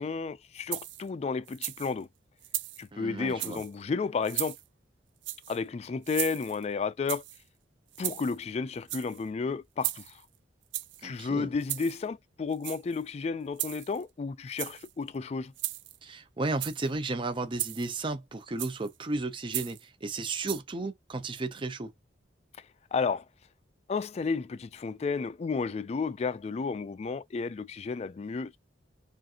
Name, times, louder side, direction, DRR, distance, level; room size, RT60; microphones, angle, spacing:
voice 1, 0.0-2.1 2.8-4.6 5.5-7.2 8.0-10.2 11.0-15.5 22.6-22.7 22.9-23.3 23.9-28.6, left 4 dB, 35° left, 0.3 m, -32 dB
sound 1, 0.7-1.1 1.5-1.9 2.4-2.9 3.3-3.7 4.2-4.6 5.2-5.6 6.0-6.6 7.1-7.4 7.9-8.4 8.8-9.2 9.8-10.2 10.7-11.0 11.6-12.0 12.5-13.0 13.6-14.0 14.5-14.9 15.6-16.0 16.5-16.9 17.6-18.0 18.6-18.9 19.5-19.8 20.5-20.6, right 14 dB, 85° right, 0.4 m, -36 dB
voice 2, 2.9-3.6 11.0-11.5 16.0-21.9, right 3 dB, 25° right, 0.5 m, -34 dB
4.9 x 2.5 x 2.8 m
head